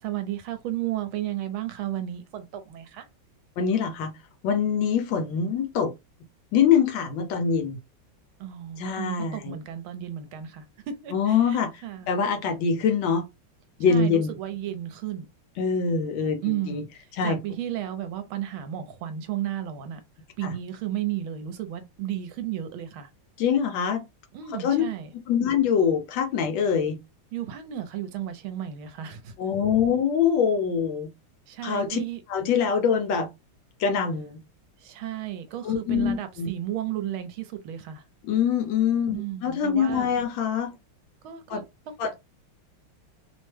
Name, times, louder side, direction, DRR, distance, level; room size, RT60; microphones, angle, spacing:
voice 1, 0.0-3.1 8.4-12.1 13.9-15.3 16.4-20.0 20.4-23.1 24.3-25.1 27.3-29.3 31.5-32.2 34.8-38.0 39.1-40.1 41.2-42.1, right 12 dB, 80° right, 1.4 m, -33 dB
voice 2, 3.6-4.1 4.4-5.9 6.5-7.8 8.8-9.6 11.1-13.2 13.8-14.3 15.6-16.8 17.2-17.4 23.4-24.0 24.5-24.8 25.3-27.0 29.4-31.1 31.6-32.0 32.3-33.3 33.8-34.4 35.6-36.5 38.2-40.7 41.5-41.6 42.0-42.1, left 7 dB, 75° left, 1.2 m, -24 dB
3.3 x 2.1 x 3.1 m
omnidirectional pair, 2.3 m